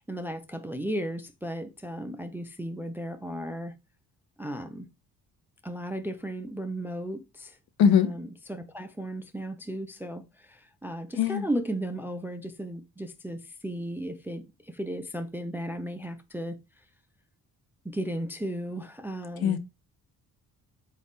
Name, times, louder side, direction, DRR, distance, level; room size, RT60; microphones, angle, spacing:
voice 1, 0.0-3.7 4.4-4.9 5.6-7.6 7.9-16.8 17.8-19.6, right 1 dB, 5° right, 0.3 m, -35 dB
voice 2, 7.8-8.1 11.2-11.4 19.4-19.6, left 8 dB, 65° left, 0.7 m, -21 dB
4.0 x 2.4 x 3.5 m
cardioid pair, 80°, 39 cm